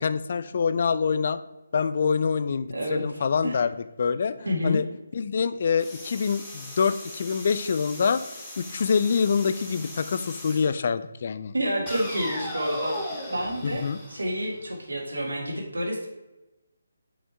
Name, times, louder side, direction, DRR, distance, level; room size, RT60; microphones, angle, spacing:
voice 1, 0.0-1.4 1.7-3.7 4.0-4.3 4.6-4.9 5.1-8.2 8.6-11.5 13.6-14.0, left 6 dB, 50° left, 13 dB, 0.4 m, -25 dB
voice 2, 2.7-3.0 3.4-3.6 4.4-4.8 11.5-13.0 13.3-16.1, equal, 80° right, 1 dB, 2.0 m, -28 dB
sound 1, 5.8-10.7 11.9-14.8, left 1 dB, 10° left, 1.8 m, -38 dB
6.2 x 5.0 x 4.5 m, 0.99 s
figure-of-eight pair, 150°, 0 cm